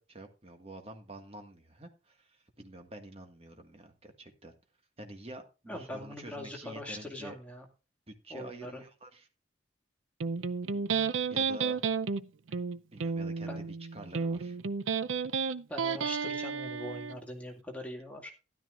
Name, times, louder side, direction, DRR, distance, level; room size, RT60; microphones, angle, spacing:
voice 1, 0.0-4.5 5.0-7.4 8.1-9.3 11.3-11.8 12.9-14.6, right 1 dB, 30° right, 5 dB, 1.7 m, -48 dB
voice 2, 5.7-7.6 8.3-8.8 13.5-13.7 15.7-18.3, left 1 dB, 5° left, 1 dB, 2.2 m, -42 dB
Electric guitar, 10.2-17.2, right 5 dB, 90° right, 0.6 m, -32 dB
13.0 x 12.0 x 2.5 m, 0.31 s
head